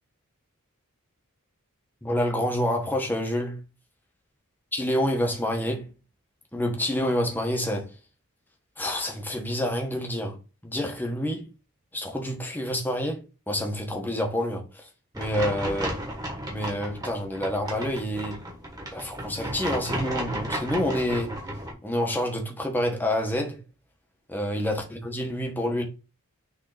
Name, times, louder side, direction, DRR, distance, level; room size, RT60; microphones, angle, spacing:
voice 1, 2.0-3.6 4.7-5.9 6.5-7.9 8.8-10.4 10.6-11.5 11.9-13.2 13.5-14.9 15.2-16.0 16.5-18.4 18.9-21.4 21.8-23.6 24.3-25.8, left 1 dB, 10° left, 1.2 m, -28 dB
sound 1, 15.1-21.7, right 1 dB, 20° right, 1.7 m, -34 dB
6.5 x 3.6 x 4.0 m
head